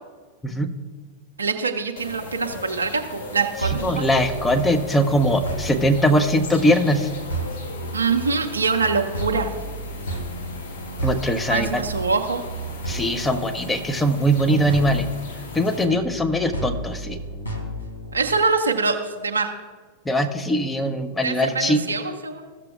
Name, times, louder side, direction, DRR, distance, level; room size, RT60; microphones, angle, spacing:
voice 1, 0.4-0.7 3.8-7.1 11.0-11.8 12.9-15.1 15.5-17.2 20.1-21.9, equal, 10° left, 6 dB, 0.7 m, -21 dB
voice 2, 1.4-4.1 7.9-9.5 11.5-12.4 15.9-16.0 18.1-19.5 21.2-22.6, right 4 dB, 75° right, 4 dB, 0.6 m, -24 dB
sound 1, 2.0-15.9, left 3 dB, 55° left, 1.2 m, -38 dB
sound 2, 3.6-18.4, right 2 dB, 85° left, 1.2 m, -33 dB
14.5 x 6.7 x 2.4 m, 1.4 s
figure-of-eight pair, 90°, 0 cm